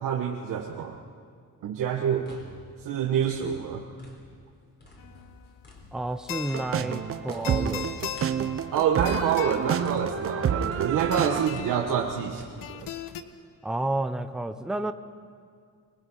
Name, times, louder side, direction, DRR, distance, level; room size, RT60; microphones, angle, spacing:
voice 1, 0.0-1.0 1.6-2.4 2.8-3.9 8.7-12.4 12.7-12.9, right 8 dB, 75° right, 0 dB, 1.4 m, -27 dB
sound 1, 2.0-4.5 4.8-10.4 10.7-12.6, left 1 dB, 30° left, 4.0 m, -51 dB
sound 2, 5.0-13.2, left 10 dB, 80° left, 1.1 m, -40 dB
voice 2, 5.9-8.0 13.6-14.9, right 2 dB, ahead, 9 dB, 0.6 m, -31 dB
sound 3, 6.5-11.5, right 8 dB, 45° right, 0.8 m, -29 dB
25.5 x 20.0 x 5.6 m, 2.2 s
cardioid pair, 135°, 32 cm